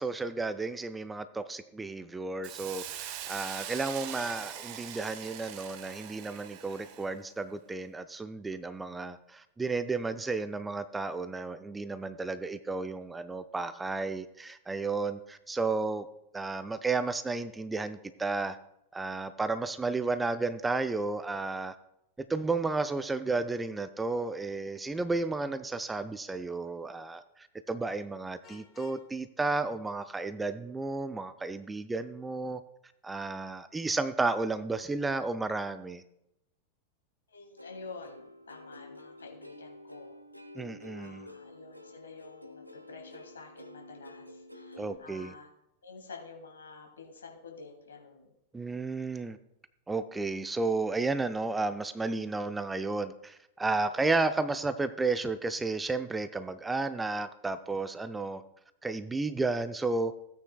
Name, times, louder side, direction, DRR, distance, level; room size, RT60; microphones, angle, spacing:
voice 1, 0.0-16.1 16.3-18.6 18.9-21.7 22.2-32.6 33.0-36.0 40.6-41.3 44.8-45.3 48.5-49.4 49.9-58.4 58.8-60.1, right 3 dB, 10° right, 11 dB, 0.5 m, -32 dB
Hiss, 2.4-7.2, right 10 dB, 45° right, 0.9 m, -42 dB
Vehicle horn car horn honking, 28.4-29.1, left 6 dB, 35° left, 1.2 m, -54 dB
voice 2, 37.3-40.2 40.9-45.5 45.8-48.3, left 4 dB, 70° left, 2 dB, 2.5 m, -49 dB
Plucked string instrument, 37.6-45.0, left 1 dB, 90° right, 0.8 m, -49 dB
16.5 x 9.1 x 2.3 m, 0.81 s
figure-of-eight pair, 90°, 0 cm